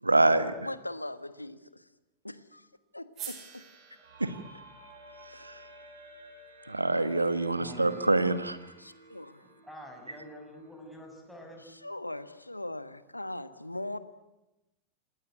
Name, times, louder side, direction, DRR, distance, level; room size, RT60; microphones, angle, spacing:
voice 1, 0.0-0.5 4.2-4.3 5.3-5.7 6.7-8.6, right 2 dB, 85° right, 13 dB, 1.5 m, -26 dB
voice 2, 0.6-1.9 2.2-2.7 2.9-3.7 8.8-9.4 11.7-14.0, left 1 dB, 85° left, 14 dB, 1.4 m, -40 dB
sound 1, 3.1-7.4, right 8 dB, 35° right, 5.9 m, -49 dB
sound 2, 4.0-11.7, right 1 dB, 65° right, 7.2 m, -54 dB
voice 3, 7.5-8.3 9.4-11.6, equal, ahead, 1 dB, 7.2 m, -47 dB
28.0 x 18.5 x 9.5 m, 0.97 s
figure-of-eight pair, 90°, 0 cm